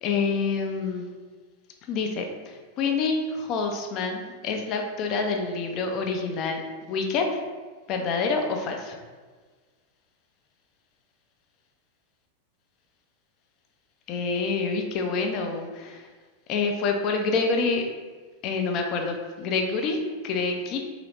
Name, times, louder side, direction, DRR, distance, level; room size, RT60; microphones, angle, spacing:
voice 1, 0.0-1.1 1.9-6.6 6.9-7.3 7.9-9.0 14.1-16.1 16.5-17.9 18.4-20.8, left 4 dB, 40° left, 3 dB, 0.6 m, -27 dB
3.8 x 2.9 x 3.3 m, 1.4 s
figure-of-eight pair, 90°, 0 cm